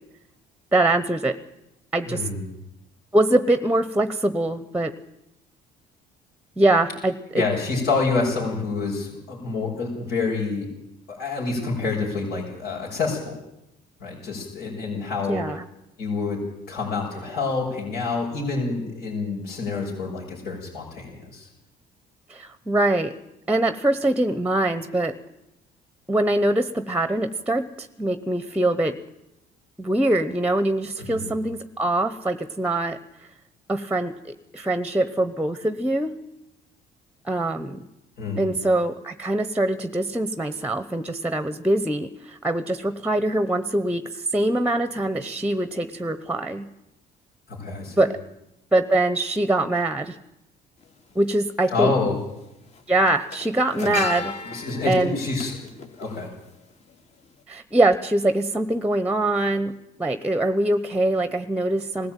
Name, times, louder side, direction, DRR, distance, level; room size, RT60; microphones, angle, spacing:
voice 1, 0.7-1.4 1.9-2.3 3.1-4.9 6.6-7.4 15.3-15.6 22.3-23.1 23.5-25.1 26.1-29.0 29.8-33.0 33.7-36.1 37.2-37.9 38.4-46.6 48.0-48.2 48.7-50.2 51.1-51.9 52.9-54.3 54.9-55.2 57.5-59.7 60.0-62.1, right 1 dB, 10° right, 12 dB, 0.9 m, -23 dB
voice 2, 2.0-2.4 7.3-10.7 11.1-13.3 14.0-15.4 16.0-16.4 16.7-21.5 31.0-31.3 38.2-38.5 47.5-48.1 51.7-52.1 53.8-54.0 54.4-55.6 56.0-56.3, left 3 dB, 80° left, -4 dB, 6.5 m, -27 dB
sound 1, 50.8-50.9 52.1-52.4 52.7-56.9 57.2-57.4, left 5 dB, 40° left, 2.2 m, -35 dB
20.0 x 15.0 x 9.1 m, 0.88 s
cardioid pair, 110°, 17 cm